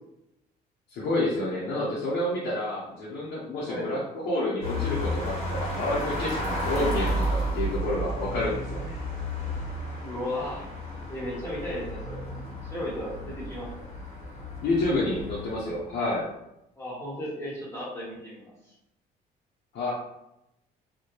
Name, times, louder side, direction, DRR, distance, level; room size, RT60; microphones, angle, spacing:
voice 1, 0.9-9.0 14.6-16.3 19.7-19.9, left 2 dB, 70° left, -6 dB, 0.7 m, -29 dB
sound 1, 4.6-16.0, equal, 40° left, 1.0 m, -32 dB
voice 2, 10.0-10.7 11.1-12.2 12.6-13.7 16.8-18.7, left 1 dB, 15° left, -7 dB, 1.2 m, -35 dB
2.2 x 2.1 x 3.0 m, 0.85 s
cardioid pair, 110°, 17 cm